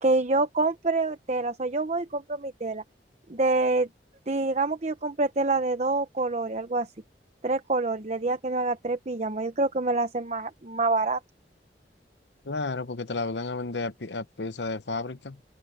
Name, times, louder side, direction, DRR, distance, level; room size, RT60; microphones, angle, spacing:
voice 1, 0.0-2.8 3.3-3.9 4.3-6.9 7.4-11.2, right 3 dB, 40° right, 0.9 m, -26 dB
voice 2, 12.4-15.4, left 3 dB, 80° left, 0.9 m, -32 dB
open air
head